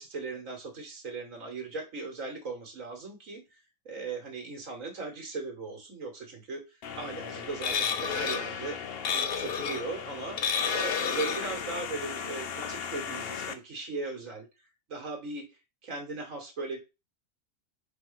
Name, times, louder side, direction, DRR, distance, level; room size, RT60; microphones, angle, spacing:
voice 1, 0.0-8.8 9.1-10.4 10.7-14.5 14.9-15.4 15.8-16.8, right 3 dB, 75° right, 2 dB, 1.7 m, -38 dB
sound 1, 6.8-13.5, left 6 dB, 55° left, 0.8 m, -32 dB
4.3 x 4.2 x 5.6 m, 0.26 s
omnidirectional pair, 1.4 m